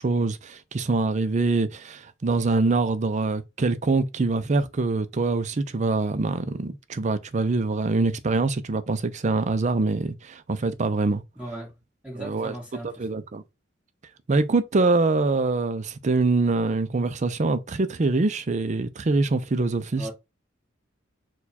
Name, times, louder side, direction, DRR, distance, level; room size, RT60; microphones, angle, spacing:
voice 1, 0.0-11.2 12.2-12.5 13.0-13.4 14.3-20.1, right 3 dB, 40° right, 0.5 m, -24 dB
voice 2, 11.3-11.7 12.0-13.1 20.0-20.1, right 1 dB, 5° right, 1.8 m, -37 dB
4.6 x 2.3 x 4.1 m
head